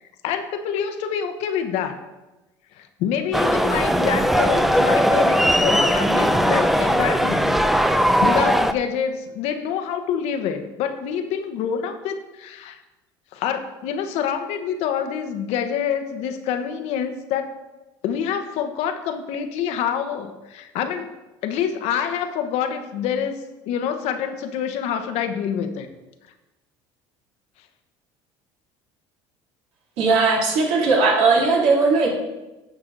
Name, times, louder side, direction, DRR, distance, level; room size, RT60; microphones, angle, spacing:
voice 1, 0.0-2.0 2.8-7.6 8.2-12.8 13.3-17.5 18.0-21.1 21.4-23.4 23.7-25.9, left 8 dB, 70° left, 8 dB, 1.0 m, -26 dB
sound 1, 3.3-8.7, equal, ahead, 0.5 m, -19 dB
voice 2, 30.0-32.1, right 4 dB, 70° right, -3 dB, 2.8 m, -18 dB
10.5 x 6.0 x 3.9 m, 1.1 s
supercardioid pair, 100°, 11 cm